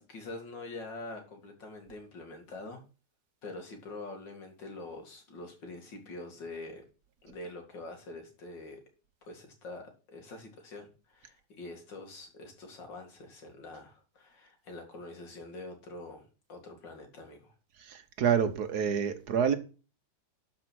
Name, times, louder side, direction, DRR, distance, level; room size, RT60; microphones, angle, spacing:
voice 1, 0.0-2.8 3.4-6.8 7.2-8.8 9.2-17.5, left 2 dB, 85° left, 3.0 m, -45 dB
voice 2, 17.8-19.6, right 7 dB, 65° right, 1.5 m, -28 dB
12.0 x 5.0 x 6.2 m
omnidirectional pair, 1.9 m